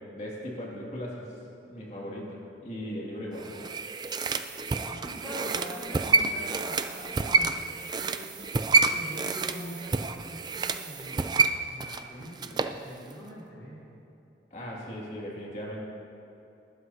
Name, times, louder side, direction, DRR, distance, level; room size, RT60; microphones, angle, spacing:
voice 1, 0.0-1.3 1.7-3.5 14.5-15.8, equal, 40° left, -4 dB, 2.3 m, -38 dB
sound 1, 3.4-12.8 13.1-13.2, right 4 dB, 25° right, 0.3 m, -28 dB
voice 2, 4.8-8.5 8.9-11.4 11.6-14.0, equal, 20° left, -11 dB, 3.1 m, -42 dB
20.0 x 12.5 x 2.8 m, 2.8 s
head